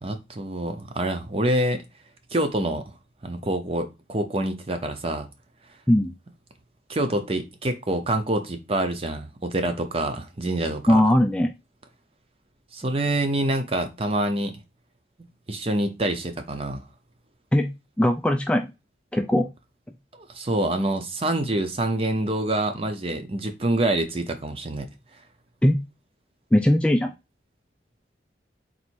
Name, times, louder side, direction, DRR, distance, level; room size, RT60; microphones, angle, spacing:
voice 1, 0.0-1.8 2.3-2.9 3.2-5.3 6.9-11.0 12.7-14.5 15.5-16.9 20.3-24.9, right 1 dB, 30° right, 0.7 m, -26 dB
voice 2, 10.9-11.5 17.5-17.7 18.0-18.7 19.1-19.5 25.6-25.8 26.5-27.1, left 1 dB, 5° left, 0.3 m, -19 dB
4.0 x 2.7 x 4.5 m
head